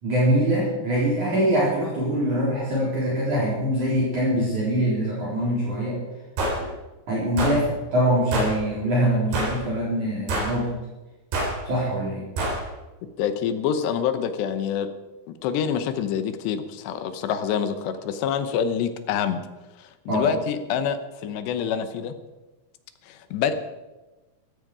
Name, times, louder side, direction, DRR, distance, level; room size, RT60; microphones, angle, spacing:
voice 1, 0.0-6.0 6.6-6.7 7.1-10.7 11.6-12.2 20.1-20.3, equal, 40° right, -6 dB, 5.0 m, -23 dB
sound 1, 6.4-6.6 7.4-7.6 8.3-8.6 9.3-9.6 10.3-10.6 11.3-11.6 12.4-12.6, right 2 dB, 60° right, 6.0 m, -25 dB
voice 2, 13.2-14.9 15.3-19.4 19.8-22.1 23.1-23.5, left 8 dB, 75° left, 10 dB, 2.9 m, -26 dB
17.5 x 15.0 x 4.9 m, 1.1 s
omnidirectional pair, 5.4 m